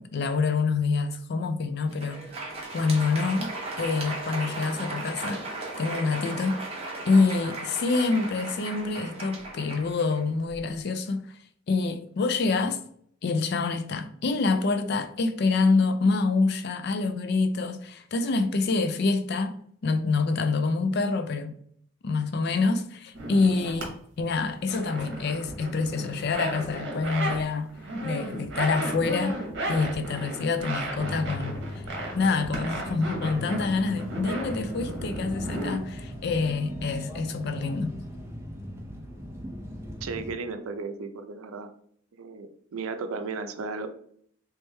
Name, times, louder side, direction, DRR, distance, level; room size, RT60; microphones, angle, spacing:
voice 1, 0.0-2.2 2.7-3.5 3.8-5.4 5.8-6.6 7.1-11.4 11.7-12.8 13.2-19.5 19.8-21.6 22.0-23.9 24.2-27.7 27.9-29.4 29.7-31.8 32.1-37.9, left 4 dB, 50° left, 0.4 m, -26 dB
Crowd, 1.8-10.7, right 2 dB, 30° right, 0.8 m, -36 dB
sound 1, 23.1-23.9 24.2-27.4 27.7-35.8, right 1 dB, 55° right, 1.0 m, -34 dB
sound 2, 31.0-40.3, equal, 10° right, 0.5 m, -39 dB
voice 2, 40.0-41.7 42.1-43.9, right 4 dB, 85° right, 0.5 m, -35 dB
3.2 x 3.1 x 3.2 m
head